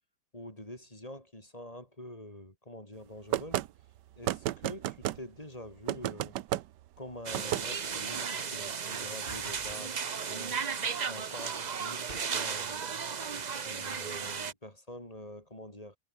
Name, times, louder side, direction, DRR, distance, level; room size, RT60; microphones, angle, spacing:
voice 1, 0.3-3.6 4.2-6.3 7.0-10.0 10.2-10.6 11.1-12.8 13.6-16.0, left 1 dB, 20° left, 4.8 m, -46 dB
sound 1, 3.3-3.7 4.2-5.2 5.9-6.6 7.3-7.6, right 14 dB, 70° right, 1.3 m, -31 dB
sound 2, 7.2-14.5, right 6 dB, 55° right, 0.5 m, -35 dB
sound 3, 9.3-9.8 12.1-12.3, right 1 dB, 30° right, 6.0 m, -47 dB
omnidirectional pair, 2.0 m